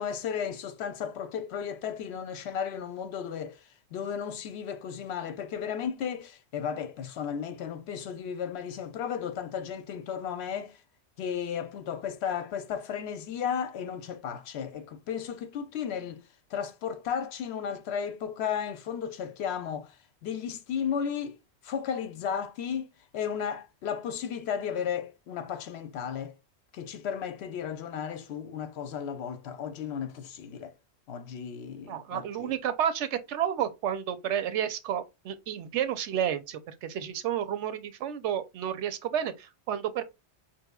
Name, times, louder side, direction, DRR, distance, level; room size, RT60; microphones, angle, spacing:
voice 1, 0.0-3.6 3.9-10.7 11.2-16.2 16.5-19.9 20.2-21.3 21.6-22.9 23.1-26.3 26.7-30.7 31.1-32.5, left 7 dB, 75° left, 0.8 m, -34 dB
voice 2, 31.9-40.0, right 9 dB, 85° right, 0.9 m, -31 dB
5.3 x 2.9 x 2.2 m
omnidirectional pair, 1.2 m